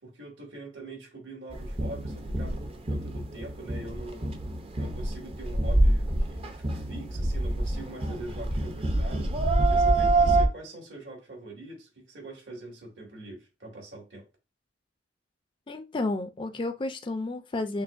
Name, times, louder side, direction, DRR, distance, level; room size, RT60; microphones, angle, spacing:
voice 1, 0.0-4.3 4.8-9.3 9.7-14.3, right 2 dB, 70° right, 2.0 m, -43 dB
sound 1, 1.5-10.5, right 2 dB, 30° right, 0.5 m, -26 dB
voice 2, 15.7-17.8, left 2 dB, 25° left, 0.4 m, -31 dB
6.0 x 2.1 x 2.5 m
head